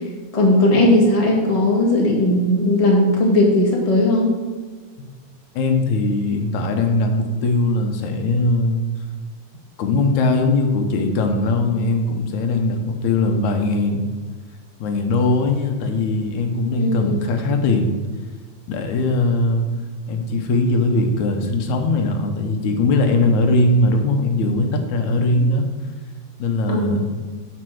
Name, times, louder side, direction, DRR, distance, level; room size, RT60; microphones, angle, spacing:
voice 1, 0.3-4.3 16.8-17.2 25.3-25.4 26.7-27.1, left 1 dB, 15° left, -2 dB, 1.3 m, -17 dB
voice 2, 5.6-8.8 9.8-14.0 14.8-17.9 18.7-19.7 20.1-25.7 26.4-27.1, left 2 dB, 80° left, 4 dB, 2.3 m, -20 dB
7.7 x 6.5 x 6.3 m, 1.4 s
omnidirectional pair, 3.3 m